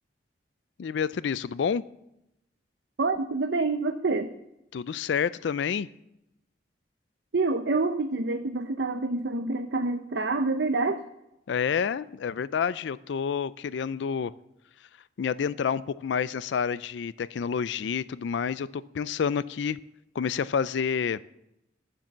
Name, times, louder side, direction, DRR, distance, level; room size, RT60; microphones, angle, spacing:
voice 1, 0.8-1.8 4.7-5.9 11.5-14.3 15.2-19.8 20.2-21.2, left 7 dB, 80° left, 18 dB, 0.4 m, -29 dB
voice 2, 3.0-4.3 7.3-11.0, right 3 dB, 75° right, 8 dB, 0.7 m, -27 dB
11.5 x 7.5 x 7.3 m, 0.84 s
head